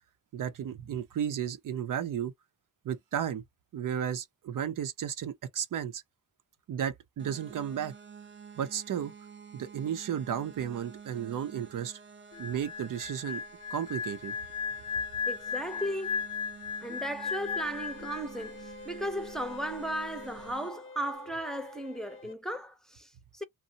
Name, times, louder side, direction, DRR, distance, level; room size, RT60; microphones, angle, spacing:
voice 1, 0.3-2.3 2.8-3.4 3.7-6.0 6.7-7.9 8.6-9.1 9.5-12.0 12.4-13.4 13.7-14.3, right 9 dB, 80° right, 0.6 m, -33 dB
sound 1, 7.2-20.7, right 6 dB, 35° right, 0.6 m, -50 dB
sound 2, 12.3-18.7 19.0-19.2, left 6 dB, 90° left, 0.6 m, -36 dB
voice 2, 15.3-16.2 16.8-23.4, equal, ahead, 0.6 m, -36 dB
sound 3, 17.3-22.3, left 3 dB, 40° left, 0.5 m, -48 dB
2.7 x 2.1 x 2.7 m
cardioid pair, 60°, 32 cm